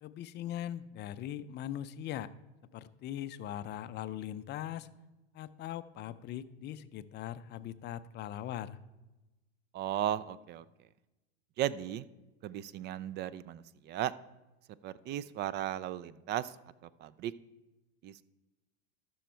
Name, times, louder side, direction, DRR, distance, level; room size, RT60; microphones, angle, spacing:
voice 1, 0.0-2.3 2.7-4.9 5.3-8.8, left 11 dB, 30° left, 13 dB, 0.5 m, -40 dB
voice 2, 9.7-10.6 11.6-12.0 12.4-14.1 14.8-16.6 16.8-17.3 18.0-18.2, right 12 dB, 30° right, 18 dB, 0.4 m, -36 dB
13.5 x 6.3 x 4.4 m, 1.0 s
hypercardioid pair, 105°, 34 cm